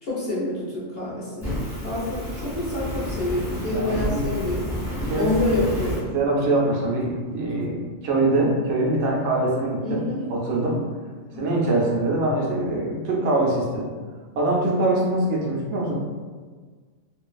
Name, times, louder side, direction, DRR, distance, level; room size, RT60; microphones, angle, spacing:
voice 1, 0.0-6.2 9.8-10.3 11.3-11.4 11.7-12.0, left 1 dB, 55° left, -8 dB, 0.7 m, -28 dB
Fire, 1.4-6.0, left 1 dB, 20° left, 0.4 m, -30 dB
voice 2, 3.7-4.3 4.9-5.7 6.1-10.9 11.4-13.9 14.3-15.9, right 2 dB, 70° right, -3 dB, 0.8 m, -23 dB
2.5 x 2.3 x 2.3 m, 1.5 s
omnidirectional pair, 1.4 m